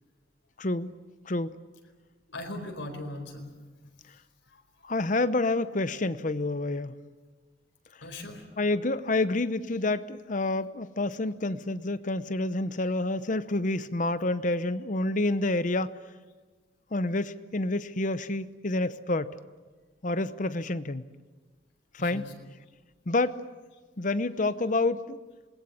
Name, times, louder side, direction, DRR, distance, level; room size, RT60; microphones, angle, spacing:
voice 1, 0.6-0.9 1.3-1.5 4.8-7.0 8.6-15.9 16.9-19.3 20.0-21.0 21.9-22.2 23.1-23.4 24.0-25.2, left 2 dB, 45° left, 14 dB, 0.8 m, -28 dB
voice 2, 2.3-3.5 4.5-4.6 8.0-8.4 22.0-22.3, left 1 dB, 85° left, 4 dB, 4.6 m, -39 dB
27.0 x 20.5 x 8.6 m, 1.4 s
head